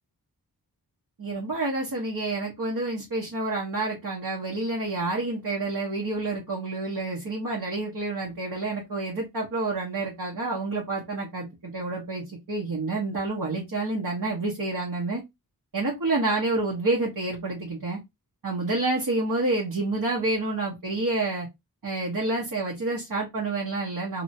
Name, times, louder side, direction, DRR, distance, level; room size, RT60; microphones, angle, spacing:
voice 1, 1.2-15.2 15.7-18.0 18.4-21.5 21.8-24.2, right 2 dB, 60° right, 1.2 m, -28 dB
3.0 x 2.7 x 2.7 m
wide cardioid pair, 60°, 38 cm